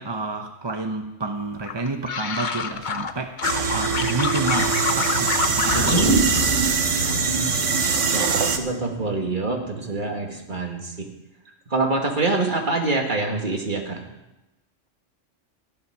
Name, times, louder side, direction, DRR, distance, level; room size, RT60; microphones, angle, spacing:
voice 1, 0.0-6.3 11.4-11.5, right 3 dB, 25° right, 5 dB, 0.8 m, -30 dB
sound 1, 1.6-3.1 3.4-6.1 6.4-7.1 7.4-7.9, left 6 dB, 45° left, 0.8 m, -27 dB
sound 2, 3.4-8.6, right 5 dB, 85° right, 1.5 m, -23 dB
sound 3, 5.7-10.3 10.6-10.7, right 2 dB, 25° left, 5.5 m, -27 dB
voice 2, 7.1-7.5 8.1-11.1 11.7-14.0, right 3 dB, 40° right, 2 dB, 2.1 m, -26 dB
15.0 x 11.0 x 6.1 m, 0.98 s
omnidirectional pair, 1.2 m